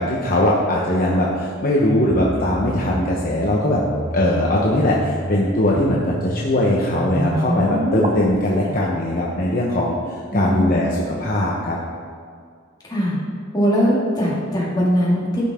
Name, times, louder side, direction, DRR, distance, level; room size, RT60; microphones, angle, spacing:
voice 1, 0.0-3.8 4.1-10.0 10.3-11.8, left 1 dB, 45° left, -4 dB, 1.0 m, -20 dB
sound 1, 2.1-8.1, right 1 dB, 30° right, 0.8 m, -28 dB
voice 2, 10.3-10.8 12.9-13.2 13.5-15.4, equal, 20° left, -6 dB, 2.4 m, -20 dB
14.5 x 5.7 x 3.7 m, 2.1 s
head